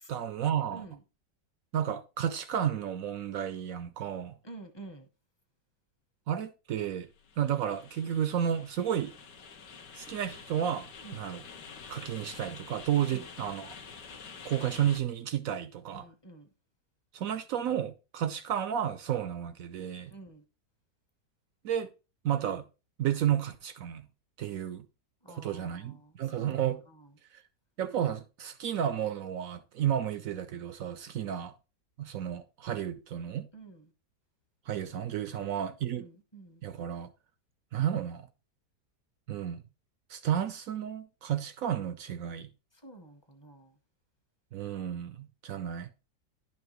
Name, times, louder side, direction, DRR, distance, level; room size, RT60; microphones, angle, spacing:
voice 1, 0.1-0.8 1.7-4.4 6.3-7.1 7.4-9.1 10.0-11.4 11.9-13.7 14.4-16.1 17.1-20.1 21.6-21.9 22.2-22.6 23.0-24.1 24.4-24.9 25.3-26.8 27.8-31.5 32.0-33.5 34.7-36.1 36.6-37.1 37.7-38.3 39.3-39.6 40.1-42.5 44.5-45.9, right 9 dB, 70° right, 0.8 m, -32 dB
voice 2, 4.4-5.1 11.0-11.2 13.1-13.6 15.9-16.5 20.1-20.4 25.2-26.6 26.9-27.1 33.5-33.9 35.9-36.6 42.8-43.7, right 2 dB, 20° left, 0.8 m, -49 dB
sound 1, 7.0-15.0, left 5 dB, 85° left, 1.7 m, -48 dB
10.5 x 5.8 x 3.0 m
omnidirectional pair, 1.8 m